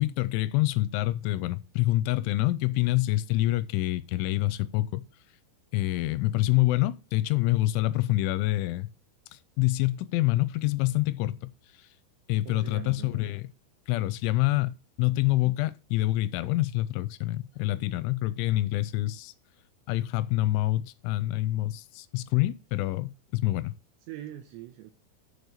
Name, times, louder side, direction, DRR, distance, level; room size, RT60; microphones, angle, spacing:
voice 1, 0.0-5.0 5.7-8.9 9.3-11.5 12.3-13.5 13.9-19.3 19.9-23.7, left 17 dB, 85° left, 3.0 m, -26 dB
voice 2, 12.5-13.3 24.1-24.9, right 13 dB, 80° right, 2.8 m, -42 dB
7.0 x 6.3 x 6.6 m
omnidirectional pair, 5.6 m